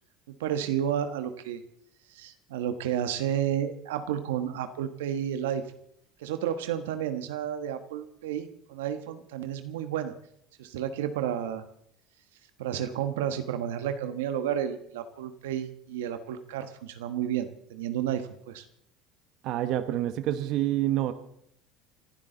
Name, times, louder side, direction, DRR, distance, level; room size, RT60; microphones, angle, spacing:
voice 1, 0.4-1.6 2.1-5.6 6.2-10.1 10.6-11.6 12.6-18.6, right 10 dB, 90° right, 9 dB, 1.3 m, -31 dB
voice 2, 19.4-21.1, right 13 dB, 65° right, 10 dB, 1.1 m, -27 dB
28.0 x 12.0 x 4.0 m, 0.71 s
supercardioid pair, 90°, 0 cm